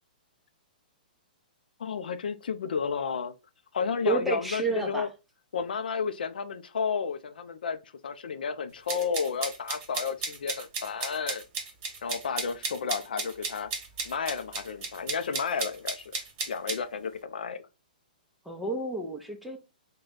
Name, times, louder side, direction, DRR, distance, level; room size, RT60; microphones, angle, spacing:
voice 1, 1.8-3.3 3.7-5.1 5.5-11.4 12.0-13.7 14.0-16.1 16.5-17.6, left 6 dB, 80° left, 0.5 m, -32 dB
voice 2, 4.0-5.1 18.5-19.6, right 2 dB, ahead, 0.7 m, -30 dB
sound 1, 8.9-16.8, right 4 dB, 40° right, 1.2 m, -34 dB
3.2 x 2.2 x 3.8 m
hypercardioid pair, 140°, 5 cm